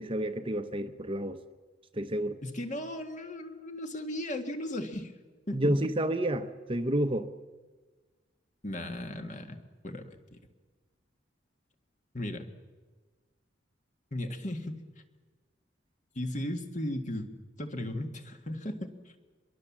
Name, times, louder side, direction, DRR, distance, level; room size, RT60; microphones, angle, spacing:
voice 1, 0.0-1.4 1.9-2.4 5.5-7.3, right 1 dB, 30° right, 0.8 m, -30 dB
voice 2, 2.4-5.1 5.5-5.6 8.6-9.6 9.8-10.4 12.1-12.5 14.1-14.8 16.2-17.3 17.6-18.9, left 1 dB, 40° left, 1.9 m, -36 dB
24.0 x 22.0 x 7.4 m
head